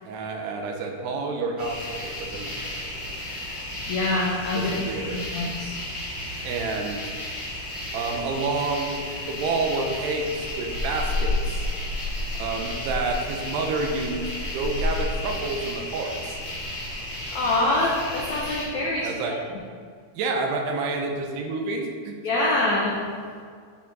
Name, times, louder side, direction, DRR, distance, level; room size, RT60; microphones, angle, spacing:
voice 1, 0.1-3.1 4.5-5.2 6.4-7.0 7.9-11.6 12.4-16.4 19.0-19.4 20.2-22.2, right 3 dB, 80° right, 2 dB, 2.9 m, -29 dB
sound 1, 1.6-18.6, left 1 dB, 25° left, 1.6 m, -32 dB
voice 2, 3.9-5.8 17.3-19.1 22.2-23.0, left 2 dB, 85° left, -4 dB, 1.6 m, -25 dB
10.5 x 4.9 x 4.7 m, 2.1 s
omnidirectional pair, 4.7 m